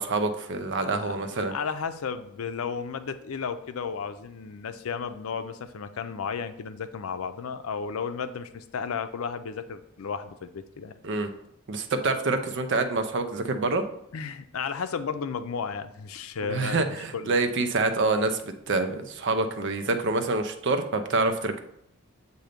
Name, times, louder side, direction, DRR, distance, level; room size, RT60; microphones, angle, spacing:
voice 1, 0.0-1.5 11.0-11.3 11.7-13.8 16.4-21.6, right 3 dB, 60° right, 7 dB, 0.6 m, -26 dB
voice 2, 0.7-10.9 14.1-17.3, left 6 dB, 85° left, 10 dB, 0.5 m, -34 dB
7.7 x 2.7 x 5.0 m, 0.76 s
head